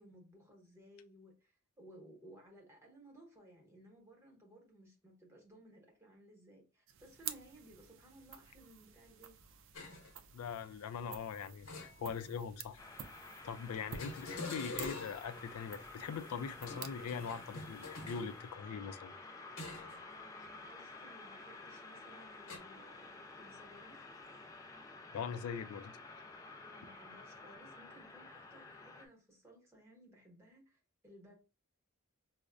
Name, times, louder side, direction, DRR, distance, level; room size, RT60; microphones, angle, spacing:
voice 1, 0.0-9.4 20.0-24.1 26.6-31.3, right 1 dB, 10° right, 1.0 m, -59 dB
sound 1, 6.9-18.6, right 8 dB, 60° right, 0.4 m, -51 dB
sound 2, 9.7-10.1 11.6-12.4 14.0-15.4 16.6-18.3 19.6-20.0 20.4-20.6 22.5-22.6, left 3 dB, 60° left, 1.0 m, -46 dB
voice 2, 10.3-12.8 13.4-19.1 25.1-26.2, left 6 dB, 85° left, 0.4 m, -42 dB
sound 3, 12.8-29.1, left 3 dB, 15° left, 0.4 m, -52 dB
5.1 x 2.1 x 2.4 m
head